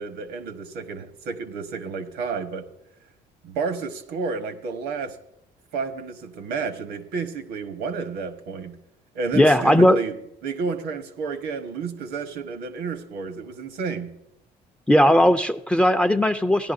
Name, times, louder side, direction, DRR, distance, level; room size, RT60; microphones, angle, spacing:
voice 1, 0.0-2.7 3.4-5.2 5.7-8.8 9.1-10.1 10.4-14.1, right 5 dB, 85° right, 8 dB, 1.3 m, -31 dB
voice 2, 9.3-10.0 14.9-16.7, equal, 5° left, 11 dB, 0.4 m, -17 dB
16.5 x 11.0 x 2.7 m, 0.81 s
cardioid pair, 110°, 17 cm